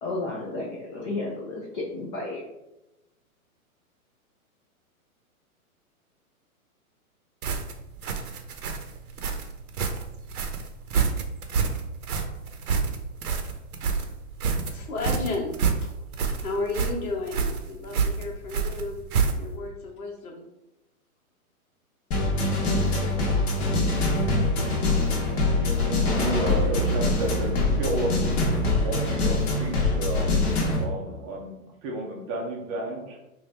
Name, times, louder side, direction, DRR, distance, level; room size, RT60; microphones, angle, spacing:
voice 1, 0.0-2.4, left 2 dB, 25° left, -4 dB, 0.5 m, -32 dB
sound 1, 7.4-19.6, right 5 dB, 75° right, 0.8 m, -28 dB
voice 2, 14.7-15.5 16.4-19.0 19.4-20.4, left 3 dB, 75° left, 0 dB, 1.3 m, -32 dB
sound 2, 22.1-30.8, left 2 dB, 45° left, 1.1 m, -24 dB
voice 3, 25.6-28.1 28.8-30.3 30.8-33.2, right 1 dB, 25° right, -1 dB, 0.6 m, -32 dB
3.7 x 2.7 x 3.3 m, 0.92 s
hypercardioid pair, 130°, 44 cm